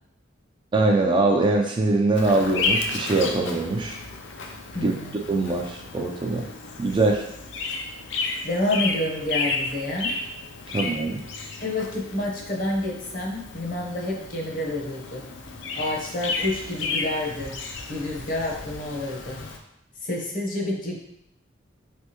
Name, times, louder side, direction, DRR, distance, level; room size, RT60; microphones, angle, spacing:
voice 1, 0.7-4.0 4.8-4.9 5.3-6.5 6.8-7.2 10.7-11.2, right 2 dB, 25° right, 1 dB, 0.4 m, -22 dB
Bird vocalization bird call bird song, 2.1-19.6, left 3 dB, 70° left, 0.5 m, -33 dB
voice 2, 4.7-5.2 8.4-10.1 11.6-15.3 15.8-17.6 17.9-19.4 20.0-21.0, left 1 dB, 45° left, -1 dB, 0.9 m, -28 dB
4.4 x 3.3 x 2.9 m, 0.77 s
head